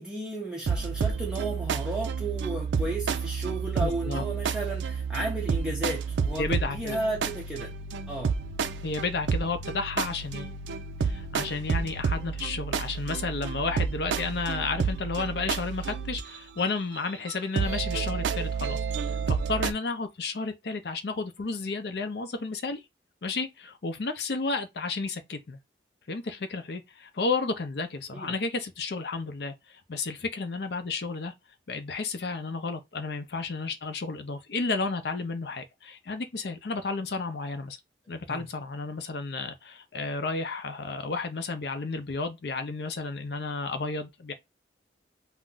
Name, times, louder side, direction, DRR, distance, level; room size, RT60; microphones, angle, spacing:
voice 1, 0.0-7.7 8.1-8.3 28.1-28.3 38.3-38.5, right 2 dB, 5° right, 0.4 m, -33 dB
sound 1, 0.7-16.4 17.3-19.7, right 5 dB, 80° right, 0.4 m, -30 dB
voice 2, 3.8-4.2 6.4-7.0 8.8-10.5 11.0-22.8 23.2-25.6 26.1-31.3 31.7-37.8 38.1-44.3, left 4 dB, 65° left, 0.5 m, -32 dB
2.5 x 2.2 x 3.7 m
head